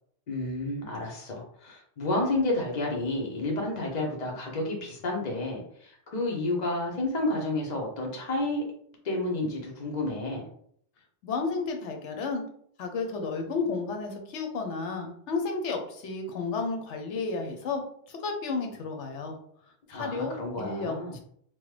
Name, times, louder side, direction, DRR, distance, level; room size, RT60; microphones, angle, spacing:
voice 1, 0.3-8.6 9.0-10.5 19.9-21.2, left 2 dB, 40° left, -1 dB, 0.8 m, -30 dB
voice 2, 11.2-12.4 12.8-17.8 18.1-19.4 19.9-21.2, left 4 dB, 80° left, 3 dB, 1.0 m, -32 dB
3.0 x 2.1 x 3.2 m, 0.64 s
omnidirectional pair, 1.2 m